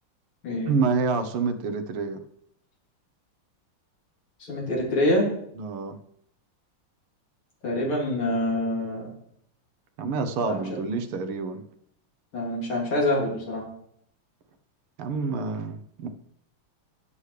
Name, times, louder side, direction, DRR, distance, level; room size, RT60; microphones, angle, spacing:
voice 1, 0.7-2.2 5.6-6.0 10.0-11.6 15.0-16.1, right 4 dB, 85° right, 8 dB, 1.8 m, -27 dB
voice 2, 4.5-5.3 7.6-9.1 10.5-10.6 12.3-13.6, left 1 dB, 80° left, -4 dB, 4.2 m, -25 dB
17.0 x 6.5 x 3.3 m, 0.70 s
omnidirectional pair, 2.4 m